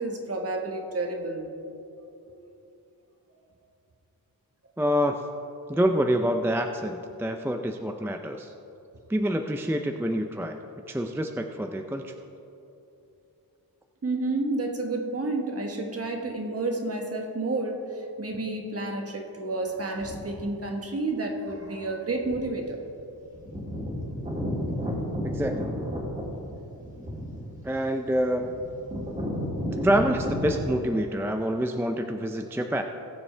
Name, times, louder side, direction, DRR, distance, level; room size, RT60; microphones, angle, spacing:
voice 1, 0.0-1.5 2.3-2.5 5.7-5.8 14.0-22.8, right 2 dB, 40° right, 3 dB, 1.4 m, -30 dB
voice 2, 4.8-5.2 5.7-8.5 9.1-10.6 10.9-12.1 25.2-25.7 27.6-28.6 29.8-32.8, equal, 5° right, 5 dB, 0.4 m, -27 dB
sound 1, 20.0-20.4 21.5-21.6 22.2-22.6 22.9-23.0 23.2-30.7, equal, 20° right, 2.4 m, -32 dB
20.0 x 7.0 x 3.3 m, 2.9 s
wide cardioid pair, 120°, 37 cm